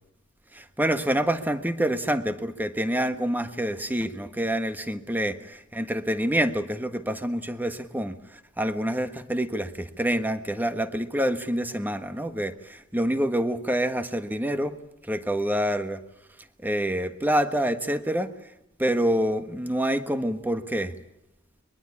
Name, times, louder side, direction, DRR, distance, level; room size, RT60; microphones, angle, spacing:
voice 1, 0.5-8.1 8.6-14.8 15.1-16.0 16.6-18.3 18.8-20.9, right 1 dB, 10° right, 9 dB, 1.3 m, -27 dB
22.5 x 22.0 x 8.5 m, 0.87 s
head